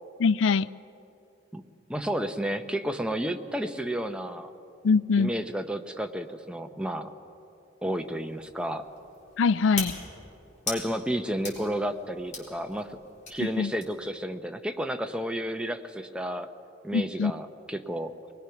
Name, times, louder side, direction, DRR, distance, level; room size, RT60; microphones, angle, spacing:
voice 1, 0.2-0.7 4.8-5.3 9.4-9.9 13.4-13.7 16.9-17.3, left 5 dB, 70° left, 18 dB, 0.4 m, -23 dB
voice 2, 1.9-4.5 5.2-7.1 7.8-8.8 10.7-13.0 13.3-16.5 16.8-18.3, equal, 5° right, 6 dB, 0.7 m, -31 dB
sound 1, 7.8-14.1, left 3 dB, 40° left, 4.2 m, -41 dB
22.5 x 20.5 x 5.9 m, 2.8 s
head